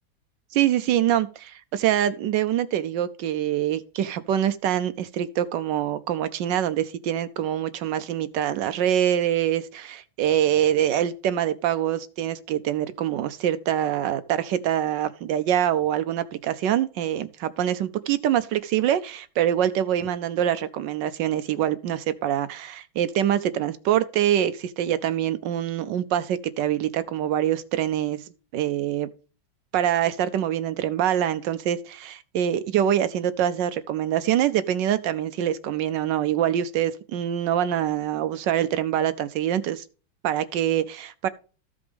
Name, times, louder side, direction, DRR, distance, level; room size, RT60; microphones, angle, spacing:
voice 1, 0.5-28.2 28.5-29.1 29.7-39.8 40.2-41.3, right 11 dB, 75° right, 1.1 m, -25 dB
14.5 x 5.2 x 3.5 m
omnidirectional pair, 2.3 m